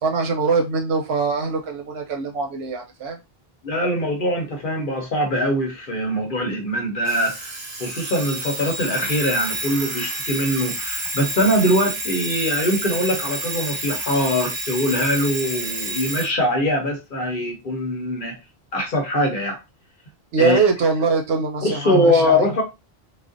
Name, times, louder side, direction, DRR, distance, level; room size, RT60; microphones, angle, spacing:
voice 1, 0.0-3.2 20.3-22.4, right 4 dB, 85° right, 3 dB, 0.8 m, -22 dB
voice 2, 3.6-18.4 18.7-19.6 20.4-20.6 21.6-22.6, left 1 dB, 60° left, 2 dB, 0.8 m, -22 dB
Alarm, 7.0-16.3, right 1 dB, 60° right, 1.0 m, -29 dB
2.4 x 2.1 x 2.5 m, 0.24 s
omnidirectional pair, 1.0 m